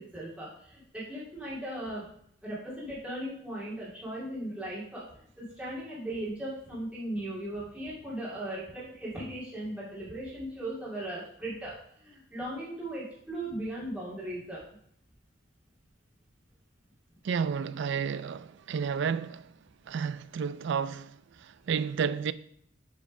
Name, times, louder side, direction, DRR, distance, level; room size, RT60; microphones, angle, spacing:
voice 1, 0.0-2.1 2.4-5.1 5.4-14.6, right 1 dB, 5° right, 2.4 m, -38 dB
voice 2, 17.2-19.5 19.9-22.3, right 6 dB, 60° right, 0.3 m, -31 dB
7.3 x 4.2 x 4.9 m
head